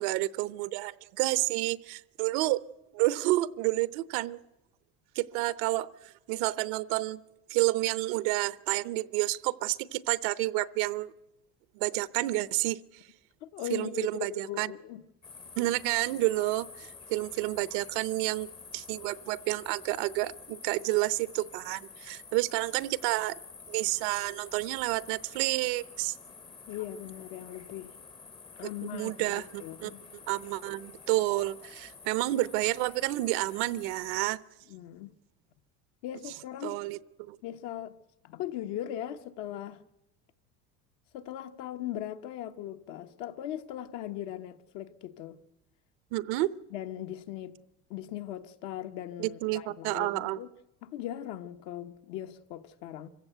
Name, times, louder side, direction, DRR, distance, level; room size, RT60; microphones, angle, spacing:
voice 1, 0.0-2.6 2.9-4.4 5.1-7.2 7.5-11.1 11.7-12.8 13.7-14.7 15.6-18.5 18.7-23.4 23.7-26.1 28.6-29.9 30.3-34.4 36.6-37.4 46.1-46.5 49.2-50.4, right 18 dB, 75° right, 0.8 m, -30 dB
voice 2, 13.4-15.0 26.7-28.0 28.6-30.0 34.7-35.1 36.0-36.8 37.4-37.9 38.2-39.8 41.1-45.4 46.7-47.5 47.9-50.5 50.8-53.1, left 11 dB, 70° left, 1.2 m, -39 dB
sound 1, 15.2-34.4, left 5 dB, 15° left, 0.7 m, -50 dB
25.5 x 16.0 x 8.0 m
cardioid pair, 150°, 30 cm